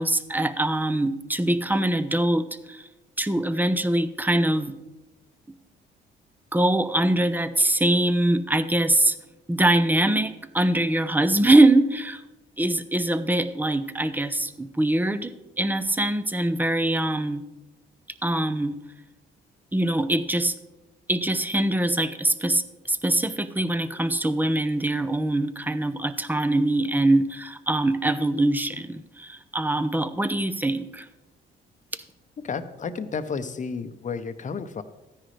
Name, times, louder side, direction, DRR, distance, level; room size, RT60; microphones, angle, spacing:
voice 1, 0.0-2.8 3.2-4.8 6.5-9.2 9.5-12.2 12.6-15.3 15.6-17.4 18.2-18.8 19.7-20.5 21.1-31.1, right 1 dB, 10° right, 12 dB, 0.7 m, -23 dB
voice 2, 32.4-34.8, left 5 dB, 40° left, 11 dB, 0.8 m, -32 dB
13.5 x 10.0 x 3.3 m, 1.0 s
cardioid pair, 90°, 20 cm